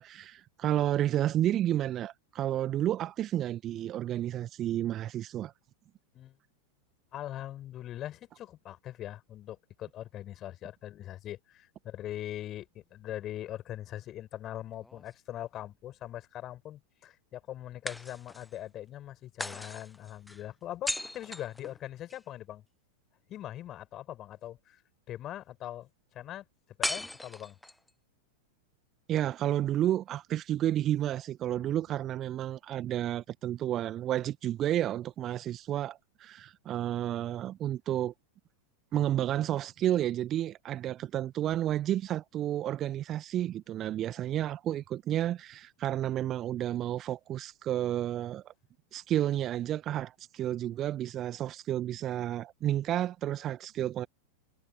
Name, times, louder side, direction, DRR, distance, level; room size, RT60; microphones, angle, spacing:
voice 1, 0.0-5.5 29.1-38.1 38.9-48.5 48.9-54.1, right 12 dB, 30° right, 1.6 m, -31 dB
voice 2, 7.1-22.6 23.3-24.8 25.1-26.4 26.8-27.6, left 12 dB, 30° left, 7.0 m, -41 dB
sound 1, 14.8-15.8 17.9-18.6 19.4-22.2 26.8-27.9, left 1 dB, 5° left, 0.4 m, -38 dB
figure-of-eight pair, 90°, 0 cm